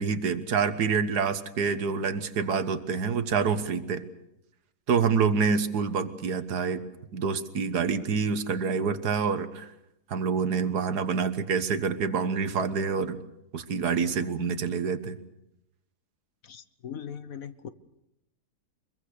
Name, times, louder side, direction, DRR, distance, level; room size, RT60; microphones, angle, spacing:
voice 1, 0.0-4.1 4.9-6.8 7.1-9.7 10.1-13.2 13.5-15.2, right 5 dB, 80° right, 11 dB, 1.8 m, -27 dB
voice 2, 16.4-17.7, left 8 dB, 60° left, 13 dB, 1.4 m, -40 dB
24.0 x 22.5 x 6.7 m, 0.86 s
omnidirectional pair, 1.7 m